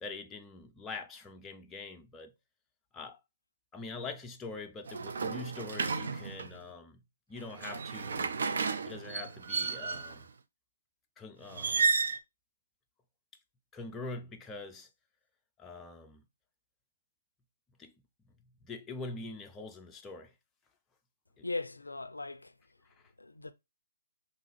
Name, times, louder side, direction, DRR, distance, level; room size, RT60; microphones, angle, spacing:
voice 1, 0.0-2.3 2.9-3.2 3.7-7.0 7.3-8.3 8.8-10.3 11.2-11.9 13.7-14.9 15.6-16.2 17.8-17.9 18.6-20.3 21.4-21.5, left 3 dB, 10° left, 0.4 m, -44 dB
sound 1, 4.9-6.6 7.4-10.2 11.5-12.2, right 4 dB, 55° right, 0.4 m, -32 dB
voice 2, 21.4-22.5 23.2-23.5, left 3 dB, 80° left, 0.4 m, -38 dB
3.6 x 2.6 x 3.2 m
figure-of-eight pair, 130°, 0 cm